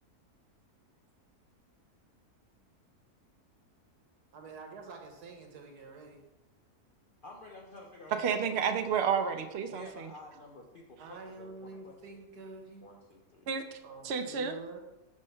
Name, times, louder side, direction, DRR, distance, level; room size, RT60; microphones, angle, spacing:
voice 1, 4.3-6.2 11.0-12.9 13.8-14.8, right 4 dB, 90° right, 3 dB, 1.5 m, -47 dB
voice 2, 7.2-8.9 9.7-12.0 12.8-13.5 13.9-14.0, left 2 dB, 65° left, 0 dB, 0.5 m, -51 dB
voice 3, 8.2-10.1 13.5-13.8 14.0-14.6, right 7 dB, 70° right, 7 dB, 0.6 m, -31 dB
5.2 x 3.6 x 5.5 m, 0.99 s
omnidirectional pair, 1.6 m